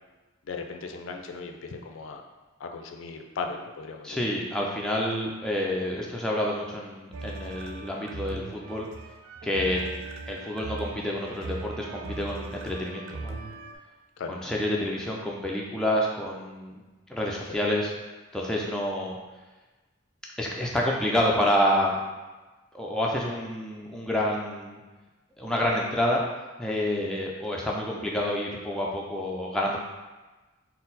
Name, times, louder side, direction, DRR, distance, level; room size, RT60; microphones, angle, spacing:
voice 1, 0.5-2.2 2.6-4.2 14.2-14.4 26.9-27.0, left 4 dB, 80° left, 4 dB, 0.4 m, -37 dB
voice 2, 4.0-8.9 9.4-9.8 10.3-13.5 14.3-16.8 17.1-17.9 18.3-19.2 20.4-22.0 22.7-24.8 25.4-26.2 26.6-29.8, left 1 dB, 5° left, -3 dB, 0.4 m, -28 dB
sound 1, 7.1-13.8, right 3 dB, 85° right, 0.4 m, -39 dB
4.2 x 2.0 x 3.9 m, 1.2 s
head